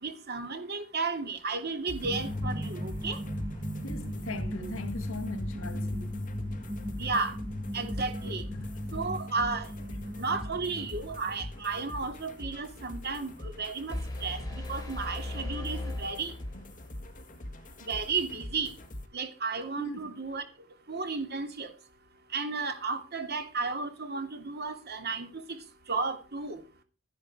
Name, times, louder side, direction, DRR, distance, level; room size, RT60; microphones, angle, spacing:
voice 1, 0.0-3.2 7.0-7.3 7.7-8.4 8.9-9.7 10.2-16.3 17.9-18.7 19.1-20.4 20.9-21.7 22.3-25.3 25.9-26.6, right 4 dB, 50° right, 2.9 m, -33 dB
sound 1, 1.9-19.1, left 1 dB, 40° left, 1.9 m, -44 dB
sound 2, 2.0-12.2, equal, 15° right, 1.9 m, -37 dB
voice 2, 3.8-6.2 8.2-8.7 16.5-16.6 19.8-20.1, left 1 dB, 75° left, 2.3 m, -40 dB
sound 3, 13.9-16.9, left 1 dB, 15° left, 6.3 m, -37 dB
13.0 x 11.5 x 4.9 m
head